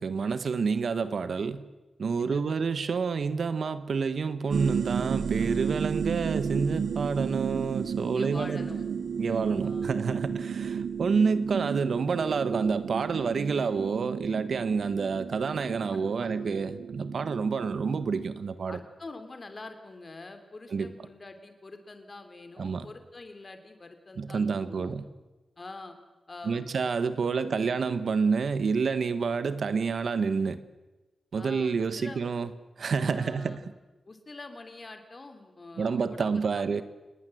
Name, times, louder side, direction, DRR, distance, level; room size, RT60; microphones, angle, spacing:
voice 1, 0.0-1.6 2.0-8.6 9.2-18.8 20.7-20.9 22.6-22.9 24.2-25.0 26.4-30.6 31.3-32.5 32.8-33.6 35.8-36.8, right 5 dB, 60° right, 1.3 m, -28 dB
voice 2, 2.2-2.7 8.0-8.8 9.6-10.0 15.9-16.4 18.7-25.0 25.6-26.0 26.3-26.7 27.2-27.8 31.3-32.3 33.1-33.6 34.0-36.8, left 3 dB, 30° left, 3.2 m, -45 dB
sound 1, 4.5-18.3, right 7 dB, 85° right, 0.7 m, -33 dB
28.0 x 20.5 x 7.9 m
wide cardioid pair, 165°, 0 cm